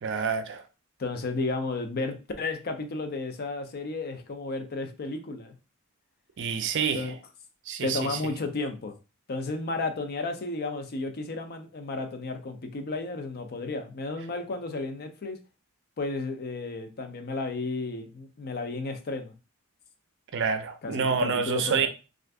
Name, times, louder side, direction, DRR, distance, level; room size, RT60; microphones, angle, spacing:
voice 1, 0.0-0.6 6.4-7.2 7.7-8.2 20.3-21.9, right 6 dB, 60° right, 0.5 m, -28 dB
voice 2, 1.0-5.5 6.9-7.1 7.8-8.9 9.3-15.4 16.0-19.3 20.8-21.9, left 3 dB, 50° left, 0.5 m, -33 dB
2.5 x 2.5 x 3.3 m
head